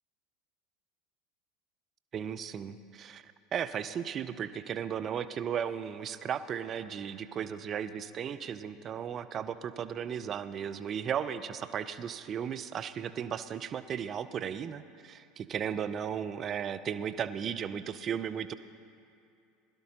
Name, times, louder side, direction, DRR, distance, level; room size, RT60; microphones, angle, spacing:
voice 1, 2.1-18.5, right 8 dB, 40° right, 12 dB, 0.6 m, -35 dB
21.5 x 12.0 x 2.9 m, 2.6 s
hypercardioid pair, 85°, 0 cm